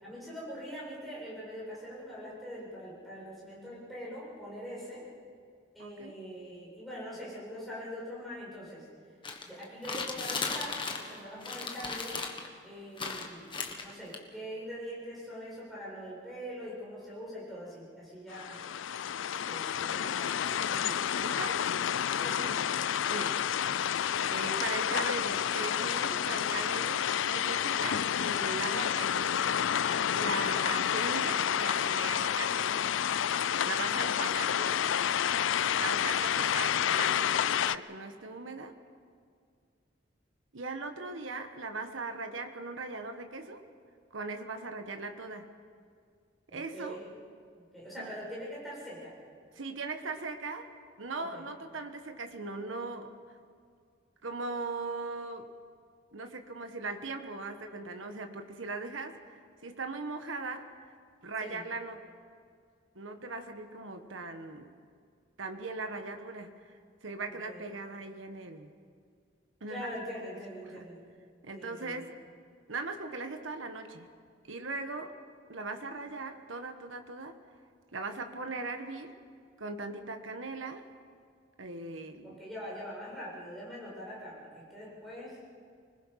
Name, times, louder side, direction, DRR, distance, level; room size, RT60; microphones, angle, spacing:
voice 1, 0.0-5.1 5.7-8.8 9.4-12.2 12.6-18.6 19.5-20.4 22.2-22.5 46.5-47.1 47.6-49.1 51.2-51.4 61.4-61.6 67.3-67.6 69.7-71.0 71.5-72.0 82.2-85.4, equal, ahead, -7 dB, 7.5 m, -43 dB
voice 2, 5.8-6.2 20.7-21.6 22.4-23.4 24.3-29.3 30.1-32.7 33.6-34.9 35.8-38.7 40.5-43.7 44.1-45.5 46.5-47.0 48.0-48.1 49.5-53.1 54.2-55.5 56.1-60.7 61.2-62.1 62.9-64.7 65.4-66.7 67.0-68.7 69.6-69.9 70.6-70.9 71.4-72.1 72.7-74.1 74.5-75.2 75.5-77.4 77.9-79.2 79.6-80.9 81.6-82.4, right 3 dB, 90° right, 6 dB, 1.4 m, -39 dB
sound 1, 9.2-11.2 11.4-12.5 13.0-14.2, left 4 dB, 25° left, 1.5 m, -36 dB
Rain in city, 18.3-37.8, left 9 dB, 85° left, 0.4 m, -29 dB
25.0 x 20.5 x 5.9 m, 2.2 s
head